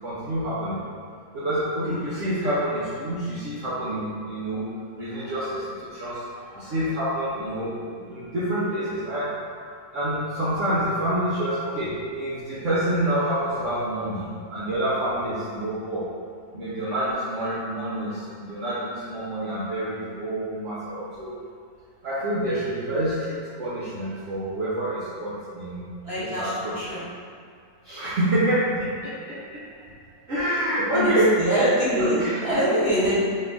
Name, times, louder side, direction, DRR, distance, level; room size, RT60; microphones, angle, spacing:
voice 1, 0.0-0.8 1.3-4.7 4.9-9.4 9.9-16.1 16.5-21.3 22.0-25.9 26.2-26.8 27.8-29.9 30.3-32.5, right 1 dB, 55° right, -10 dB, 1.0 m, -27 dB
voice 2, 26.0-27.0 30.9-32.2 32.4-33.2, equal, 20° right, -12 dB, 1.3 m, -24 dB
4.4 x 2.5 x 3.5 m, 2.1 s
omnidirectional pair, 1.8 m